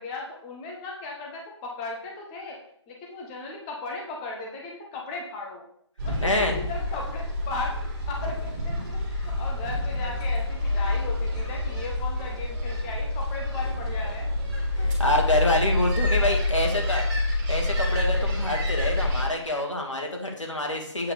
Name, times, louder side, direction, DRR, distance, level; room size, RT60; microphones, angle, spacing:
voice 1, 0.0-2.6 2.9-5.6 6.0-14.4 14.7-15.1 15.6-15.9 16.2-16.3 16.6-16.7, left 3 dB, 15° left, -1 dB, 1.1 m, -37 dB
sound 1, 6.0-19.3, left 2 dB, 40° right, 2.9 m, -27 dB
voice 2, 6.2-6.5 14.8-17.1 17.5-21.1, left 1 dB, 85° left, 1 dB, 2.0 m, -26 dB
8.4 x 6.7 x 3.4 m, 0.68 s
figure-of-eight pair, 145°, 15 cm